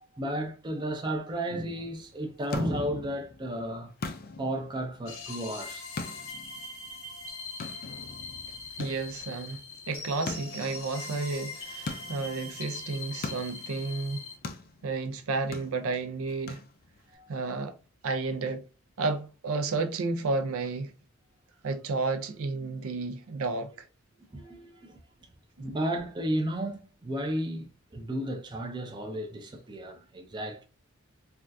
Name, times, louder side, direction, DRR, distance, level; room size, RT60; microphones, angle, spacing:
voice 1, 0.1-3.9 4.2-5.9 17.1-17.3 24.2-25.0 25.6-30.6, right 1 dB, 20° right, 0.4 m, -33 dB
sound 1, 2.0-17.1, left 3 dB, 45° left, 0.4 m, -43 dB
sound 2, 5.1-14.4, left 4 dB, 75° left, 0.8 m, -42 dB
voice 2, 8.8-14.3 14.8-16.6 17.3-17.7 18.0-18.6 19.0-20.9 21.6-23.9, right 3 dB, 80° right, 0.5 m, -32 dB
3.4 x 2.3 x 2.5 m
head